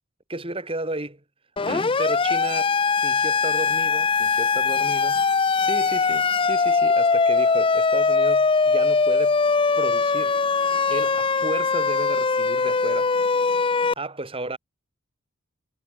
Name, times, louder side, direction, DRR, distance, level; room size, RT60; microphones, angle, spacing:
voice 1, 0.3-1.2 1.7-9.4 9.8-10.3 10.9-13.2 13.5-13.6 14.0-14.6, right 2 dB, 25° right, 3.2 m, -33 dB
Siren, 1.6-13.9, left 4 dB, 25° left, 0.5 m, -21 dB
head